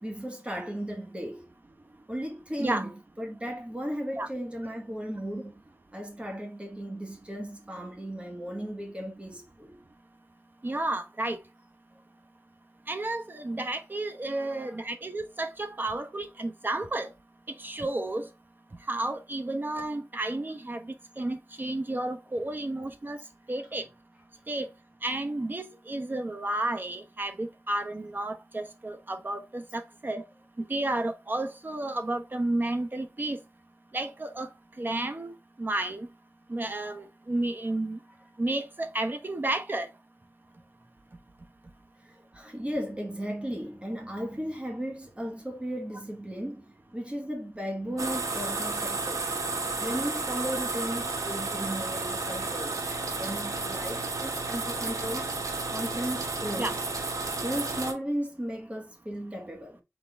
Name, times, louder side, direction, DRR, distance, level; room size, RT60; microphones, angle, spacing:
voice 1, 0.0-1.5 2.1-5.6 5.9-9.8 14.4-14.8 42.0-49.3 49.8-55.3 55.7-56.8 57.4-59.8, equal, 20° right, 1.4 m, -36 dB
voice 2, 10.6-11.4 12.9-17.1 17.6-18.3 18.9-23.2 23.5-23.8 24.5-24.7 25.0-30.2 30.6-33.4 33.9-34.5 34.8-36.1 36.5-38.0 38.4-39.9 56.6-56.8, right 2 dB, 35° right, 0.9 m, -32 dB
sound 1, 48.0-57.9, right 3 dB, 90° right, 0.9 m, -32 dB
4.2 x 3.7 x 3.4 m
wide cardioid pair, 75°, 5 cm